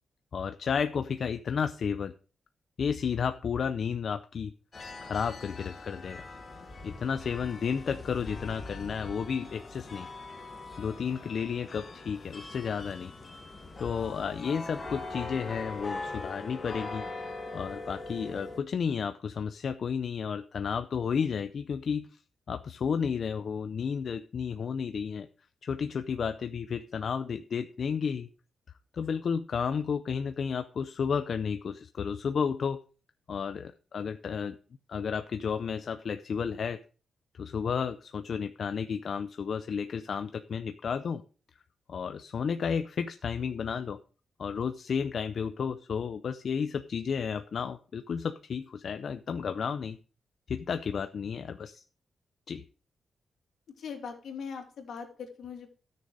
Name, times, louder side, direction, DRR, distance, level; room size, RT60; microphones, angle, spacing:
voice 1, 0.3-2.1 2.8-4.5 5.0-6.2 6.8-10.1 10.8-13.1 13.8-17.1 17.5-22.1 22.5-25.3 25.6-28.3 28.9-32.8 33.3-34.6 34.9-36.8 37.3-41.2 41.9-44.0 44.4-50.0 50.5-51.8 52.5-52.6, left 6 dB, 55° left, 9 dB, 0.5 m, -32 dB
sound 1, 4.7-18.6, left 3 dB, 35° left, 1.9 m, -42 dB
voice 2, 53.8-55.7, left 6 dB, 75° left, 2 dB, 2.7 m, -40 dB
13.0 x 6.7 x 4.9 m, 0.38 s
wide cardioid pair, 150°, 0 cm